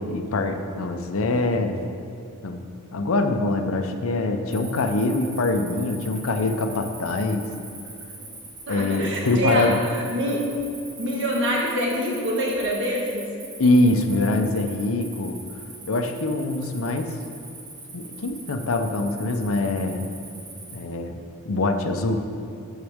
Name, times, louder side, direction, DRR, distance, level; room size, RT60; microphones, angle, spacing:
voice 1, 0.0-1.8 2.4-2.6 2.9-7.4 8.7-9.8 13.6-15.4 15.9-17.1 17.9-20.0 20.7-22.2, left 2 dB, 65° left, 6 dB, 0.6 m, -24 dB
Cricket, 4.5-20.8, right 3 dB, 85° right, 1.9 m, -42 dB
voice 2, 8.7-10.4 11.0-13.3, equal, 55° right, -2 dB, 1.5 m, -26 dB
7.9 x 7.4 x 3.5 m, 2.4 s
head